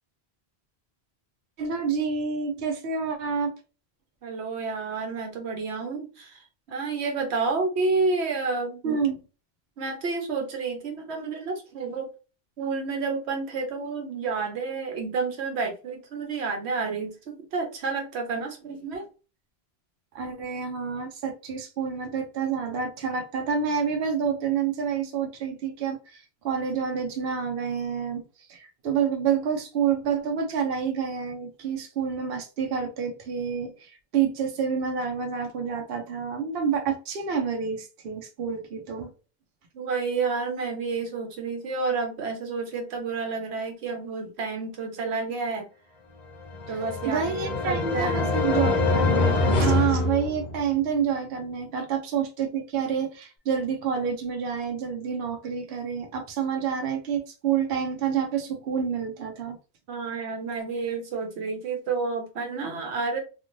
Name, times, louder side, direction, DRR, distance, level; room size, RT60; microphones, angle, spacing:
voice 1, 1.6-3.5 8.8-9.2 20.1-28.2 28.5-39.1 47.1-59.6, right 7 dB, 70° right, 0.8 m, -28 dB
voice 2, 4.2-6.4 6.7-9.0 9.8-12.1 12.6-19.0 39.7-45.7 46.7-48.3 51.8-51.9 59.9-63.2, right 4 dB, 90° right, 1.1 m, -30 dB
sound 1, 46.4-50.8, left 3 dB, 50° left, 0.6 m, -25 dB
2.5 x 2.5 x 3.0 m
omnidirectional pair, 1.1 m